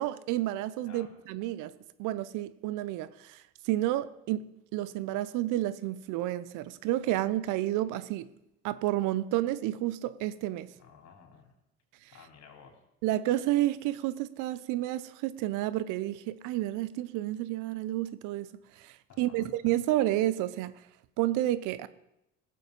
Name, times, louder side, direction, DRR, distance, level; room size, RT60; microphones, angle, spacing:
voice 1, 0.0-1.7 2.0-4.5 4.7-8.3 8.6-10.7 13.0-18.5 18.8-20.7 21.2-21.9, right 14 dB, 75° right, 0.8 m, -30 dB
voice 2, 10.8-11.6 12.1-12.8 19.1-19.5, left 7 dB, 60° left, 3.6 m, -53 dB
18.0 x 7.6 x 5.5 m
hypercardioid pair, 65°, 31 cm